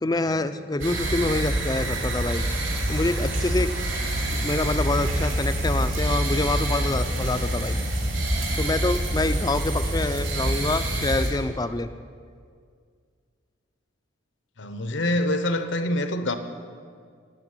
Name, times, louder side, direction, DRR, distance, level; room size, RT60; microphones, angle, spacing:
voice 1, 0.0-2.4 2.9-3.7 4.3-7.8 8.6-11.9, left 2 dB, 20° left, 11 dB, 0.4 m, -26 dB
sound 1, 0.8-11.3, right 1 dB, 75° right, 3.1 m, -26 dB
voice 2, 14.6-16.4, left 1 dB, 70° left, 9 dB, 0.9 m, -26 dB
12.0 x 8.1 x 9.5 m, 2.1 s
head